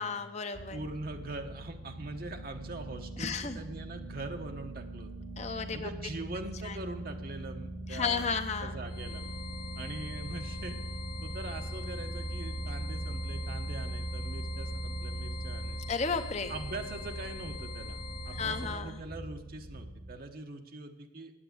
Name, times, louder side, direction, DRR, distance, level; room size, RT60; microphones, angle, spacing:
voice 1, 0.0-0.8 3.2-3.6 5.4-5.9 6.6-6.7 7.9-8.7 15.9-16.5 18.4-19.0, left 5 dB, 40° left, 8 dB, 0.6 m, -33 dB
sound 1, 0.5-20.2, right 1 dB, 80° right, 4.0 m, -40 dB
voice 2, 0.7-5.1 5.7-8.3 8.6-9.2 9.7-10.8 11.2-15.8 16.5-18.0 18.2-21.3, right 2 dB, 55° right, 4 dB, 1.1 m, -42 dB
sound 2, 8.9-18.8, left 4 dB, 55° left, 1.9 m, -44 dB
8.8 x 8.8 x 8.4 m, 0.98 s
head